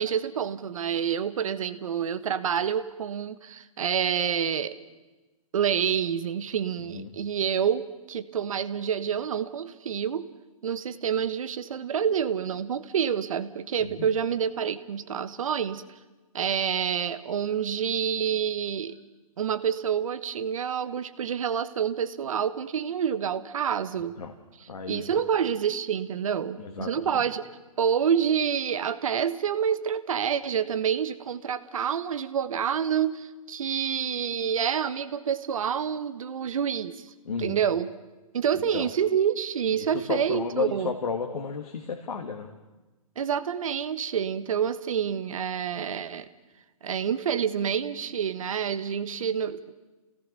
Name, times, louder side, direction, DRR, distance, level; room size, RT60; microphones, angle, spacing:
voice 1, 0.0-4.8 5.5-10.2 10.6-15.8 16.3-19.0 19.4-24.2 24.6-27.4 27.8-37.1 37.4-37.9 38.3-40.9 43.2-46.2 46.8-49.7, right 8 dB, 65° right, 12 dB, 1.3 m, -28 dB
voice 2, 24.7-25.2 26.6-27.2 37.3-37.6 38.7-38.9 39.7-42.5, left 5 dB, 90° left, 3 dB, 2.2 m, -33 dB
28.5 x 17.5 x 6.9 m, 1.2 s
hypercardioid pair, 160°, 19 cm